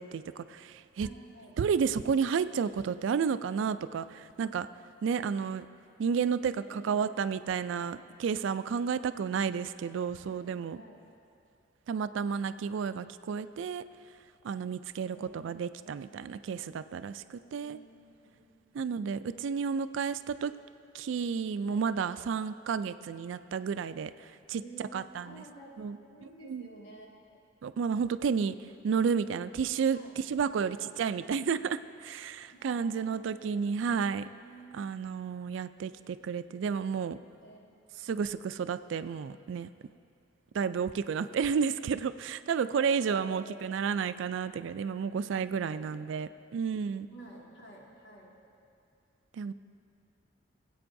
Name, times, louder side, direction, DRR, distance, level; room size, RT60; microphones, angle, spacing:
voice 1, 0.0-1.1 1.6-4.7 5.0-5.7 6.0-10.8 11.9-13.8 14.4-17.8 18.7-20.5 20.9-25.4 25.8-26.0 26.5-26.7 27.6-28.6 28.8-34.3 34.7-37.2 38.0-39.7 40.5-47.1 49.3-49.5, right 6 dB, 75° right, 13 dB, 0.3 m, -31 dB
voice 2, 1.0-1.5 6.4-7.2 10.3-11.0 15.0-15.9 17.3-18.6 21.6-21.8 22.1-22.3 24.5-27.1 29.9-30.1 30.7-30.9 31.2-31.4 32.5-33.5 34.4-34.8 37.4-37.6 38.0-38.1 42.8-43.9 45.7-46.0 46.2-46.4 47.1-48.3, right 1 dB, 75° left, -4 dB, 2.0 m, -51 dB
22.0 x 8.4 x 2.6 m, 2.5 s
head